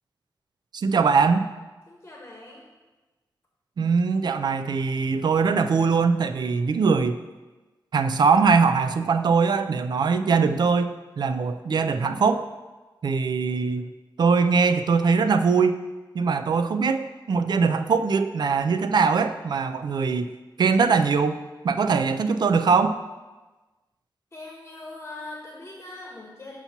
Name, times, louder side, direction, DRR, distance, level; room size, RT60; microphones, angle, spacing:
voice 1, 0.7-1.5 3.8-7.2 7.9-12.5 13.0-13.9 14.2-15.8 16.1-20.3 20.6-23.0, right 5 dB, 60° right, 10 dB, 0.3 m, -22 dB
voice 2, 1.9-2.6 24.3-26.6, left 2 dB, 25° left, -2 dB, 1.1 m, -41 dB
6.8 x 2.9 x 5.8 m, 1.2 s
wide cardioid pair, 100°, 8 cm